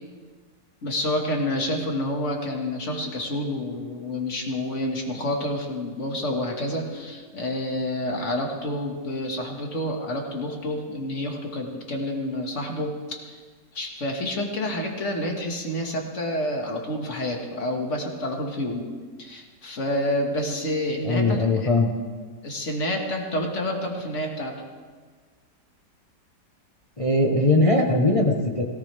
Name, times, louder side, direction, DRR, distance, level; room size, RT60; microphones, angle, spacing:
voice 1, 0.8-13.4 13.7-18.8 19.2-21.7 22.4-24.5, left 1 dB, 40° left, 1 dB, 2.1 m, -28 dB
voice 2, 21.0-21.9 27.0-28.6, left 2 dB, 25° left, 0 dB, 1.0 m, -20 dB
17.5 x 17.5 x 3.5 m, 1.5 s
omnidirectional pair, 1.9 m